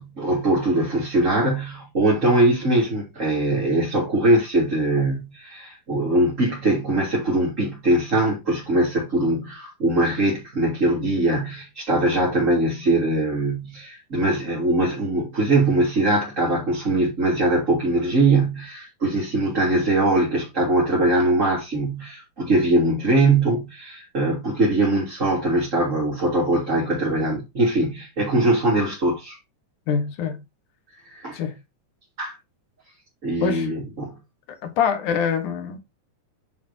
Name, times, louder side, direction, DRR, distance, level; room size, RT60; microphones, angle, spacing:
voice 1, 0.0-29.4 31.0-31.4 32.2-32.4 33.2-34.2, right 2 dB, 25° right, 3.5 m, -21 dB
voice 2, 29.9-30.4 31.3-31.5 33.4-33.7 34.6-35.8, left 7 dB, 85° left, 3.1 m, -24 dB
9.3 x 6.9 x 2.9 m
omnidirectional pair, 3.4 m